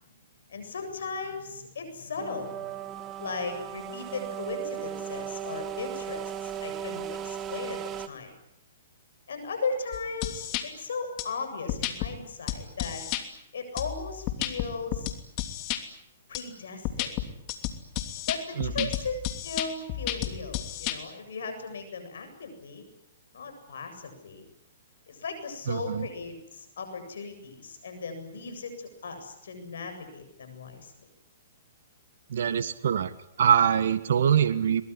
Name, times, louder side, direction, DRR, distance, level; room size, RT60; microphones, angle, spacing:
voice 1, 0.5-2.7 3.2-8.3 9.3-13.0 13.5-15.1 16.3-17.1 18.3-19.1 19.4-22.9 23.3-24.4 25.1-30.9, left 4 dB, 75° left, 7 dB, 7.8 m, -37 dB
sound 1, 2.2-8.1, right 9 dB, 25° right, 1.8 m, -36 dB
sound 2, 9.9-10.6 11.2-11.3 11.7-12.1 12.5-13.2 13.8-15.8 16.3-16.4 16.8-21.0, left 13 dB, 35° left, 2.9 m, -32 dB
voice 2, 25.7-26.1 32.3-33.1 33.4-34.8, right 8 dB, 65° right, 12 dB, 1.6 m, -24 dB
23.0 x 21.5 x 10.0 m, 0.76 s
hypercardioid pair, 135°, 0 cm